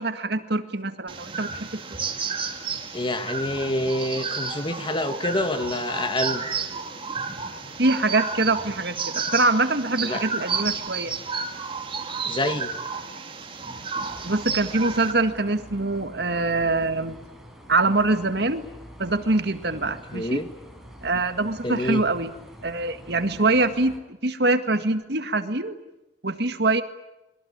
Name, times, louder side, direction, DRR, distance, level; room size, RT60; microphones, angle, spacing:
voice 1, 0.0-1.8 7.8-11.1 14.2-17.2 17.7-18.7 19.0-20.4 21.0-22.3 22.6-25.8 26.2-26.8, right 2 dB, 65° right, 9 dB, 1.9 m, -24 dB
sound 1, 1.1-15.1, right 5 dB, 30° right, 2.6 m, -32 dB
voice 2, 2.9-6.4 10.0-10.2 12.3-12.7 20.1-20.5 21.6-22.0, left 1 dB, 30° left, 9 dB, 2.0 m, -27 dB
sound 2, 13.9-24.0, equal, ahead, 4.8 m, -46 dB
27.5 x 22.0 x 8.9 m, 0.96 s
head